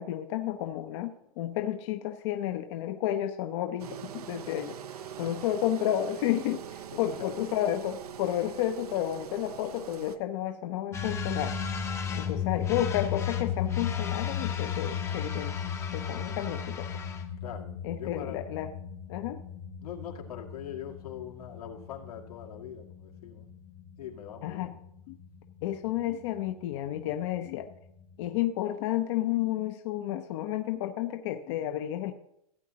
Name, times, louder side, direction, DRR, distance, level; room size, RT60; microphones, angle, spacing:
voice 1, 0.0-4.8 5.2-11.5 12.1-15.6 15.9-16.9 17.8-18.7 19.1-19.4 24.4-24.7 25.1-25.2 25.6-27.7 28.2-32.1, left 12 dB, 50° left, 7 dB, 0.7 m, -31 dB
Engine, 3.8-10.2, right 9 dB, 85° right, 0.8 m, -43 dB
voice 2, 5.0-5.3 6.9-7.4 12.1-12.5 17.4-18.4 19.8-23.5 24.0-24.8, left 9 dB, 85° left, 0 dB, 2.1 m, -43 dB
sound 1, 10.9-28.4, left 7 dB, 15° left, 0.7 m, -36 dB
15.5 x 8.3 x 2.9 m, 0.75 s
hypercardioid pair, 140°, 19 cm